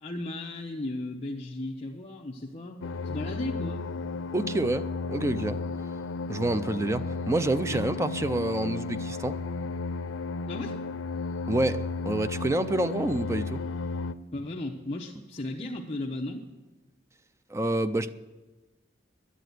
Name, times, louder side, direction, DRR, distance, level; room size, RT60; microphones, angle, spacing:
voice 1, 0.0-3.8 7.7-7.8 10.5-10.8 14.3-16.5, left 2 dB, 35° left, 0.9 m, -35 dB
sound 1, 2.8-14.1, left 3 dB, 90° left, 0.5 m, -34 dB
voice 2, 4.3-5.6 6.3-9.4 11.5-13.6 17.5-18.1, right 1 dB, 15° right, 0.4 m, -28 dB
11.0 x 9.9 x 9.3 m
head